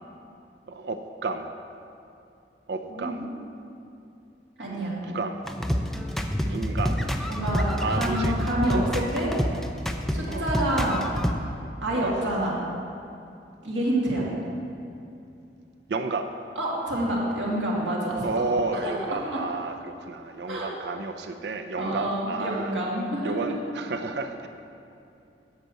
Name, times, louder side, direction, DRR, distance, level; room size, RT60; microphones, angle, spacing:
voice 1, 0.7-1.5 2.7-3.2 4.7-5.4 6.5-7.0 7.8-8.3 8.7-8.9 10.3-10.5 11.9-12.2 15.9-16.3 18.2-22.8 23.2-24.5, right 3 dB, 65° right, 7 dB, 0.5 m, -31 dB
voice 2, 2.9-3.3 4.6-5.0 7.3-9.3 10.1-11.0 11.8-12.6 13.6-14.3 16.6-18.2 18.7-19.4 20.5-20.7 21.8-23.3, right 1 dB, 90° right, -4 dB, 2.1 m, -28 dB
sound 1, 5.5-11.3, equal, ahead, 0.4 m, -27 dB
8.1 x 5.9 x 7.6 m, 2.6 s
head